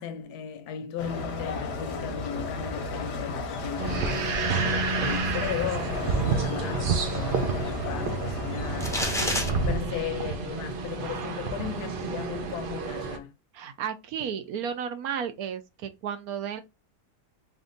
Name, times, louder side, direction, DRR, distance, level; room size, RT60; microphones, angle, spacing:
voice 1, 0.0-13.3, left 9 dB, 75° left, 1.1 m, -36 dB
sound 1, 1.0-9.8, left 2 dB, 55° left, 0.9 m, -34 dB
sound 2, 3.8-13.2, right 4 dB, 85° right, 0.4 m, -30 dB
sound 3, 8.8-9.5, left 1 dB, 5° left, 0.4 m, -27 dB
voice 2, 9.2-9.7 13.5-16.6, right 8 dB, 70° right, 1.0 m, -33 dB
3.4 x 2.6 x 3.8 m
omnidirectional pair, 1.8 m